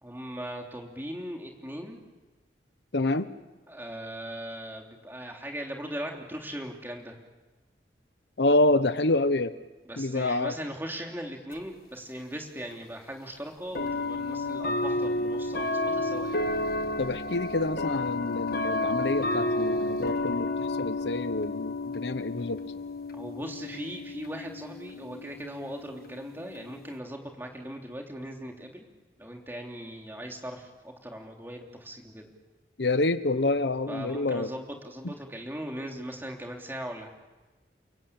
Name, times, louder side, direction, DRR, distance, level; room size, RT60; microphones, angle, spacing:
voice 1, 0.0-2.0 3.7-7.1 9.8-16.4 23.1-28.9 29.2-32.3 33.9-37.1, equal, 10° right, 1 dB, 3.4 m, -39 dB
voice 2, 2.9-3.3 8.4-9.5 10.0-10.5 17.0-22.6 32.8-34.5, left 2 dB, 75° left, 12 dB, 1.0 m, -27 dB
sound 1, 11.5-11.6 12.7-12.8 13.7-27.0, left 2 dB, 55° left, 1.5 m, -31 dB
29.5 x 23.0 x 8.8 m, 1.2 s
head